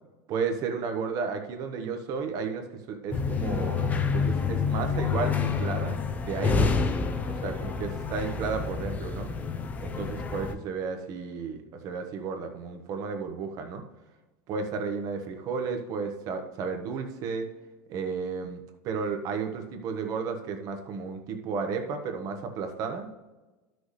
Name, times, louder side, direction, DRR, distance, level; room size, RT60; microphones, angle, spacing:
voice 1, 0.3-6.0 6.2-6.7 7.3-9.3 9.8-13.8 14.5-17.5 17.9-23.1, right 5 dB, 40° right, 5 dB, 1.1 m, -33 dB
sound 1, 3.1-10.5, left 5 dB, 20° left, 0.6 m, -28 dB
12.5 x 6.2 x 3.3 m, 1.2 s
supercardioid pair, 155°, 9 cm